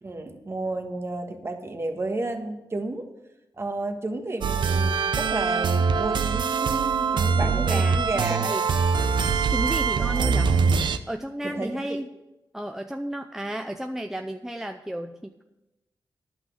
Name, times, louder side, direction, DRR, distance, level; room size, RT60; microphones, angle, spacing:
voice 1, 0.0-3.1 3.6-8.7 10.0-10.4 11.4-12.0, right 2 dB, 35° right, 5 dB, 1.5 m, -32 dB
sound 1, 4.4-11.0, right 5 dB, 75° right, 0.6 m, -23 dB
voice 2, 7.4-8.6 9.5-10.6 11.1-12.1 12.5-15.4, right 1 dB, 5° right, 6 dB, 0.5 m, -33 dB
11.0 x 5.9 x 8.1 m, 0.98 s
cardioid pair, 85°, 8 cm